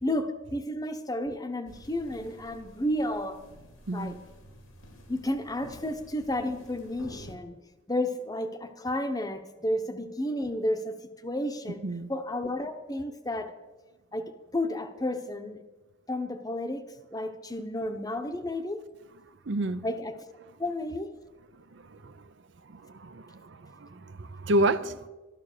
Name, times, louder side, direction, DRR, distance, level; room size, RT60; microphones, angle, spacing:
voice 1, 0.0-3.4 3.9-4.2 5.1-7.6 7.9-11.8 12.1-13.5 14.1-15.6 16.1-18.8 19.8-20.2 20.6-21.2, left 1 dB, 20° left, 0.9 m, -32 dB
sound 1, 1.7-7.4, equal, 90° left, 2.7 m, -50 dB
voice 2, 19.5-19.8 21.7-22.2 22.7-25.1, right 1 dB, 60° right, 0.6 m, -30 dB
13.5 x 11.5 x 6.6 m
head